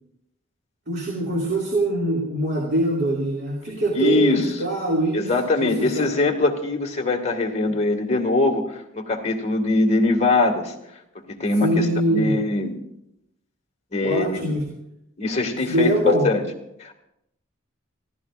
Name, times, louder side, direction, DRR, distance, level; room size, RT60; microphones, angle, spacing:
voice 1, 0.9-5.3 5.6-6.1 11.6-12.3 14.0-14.6 15.7-16.3, right 1 dB, 60° right, -2 dB, 2.5 m, -23 dB
voice 2, 3.9-4.5 5.1-10.7 11.3-12.8 13.9-14.5 15.2-16.4 16.8-16.9, left 2 dB, 35° left, 1 dB, 1.9 m, -22 dB
28.0 x 15.5 x 2.5 m, 0.83 s
head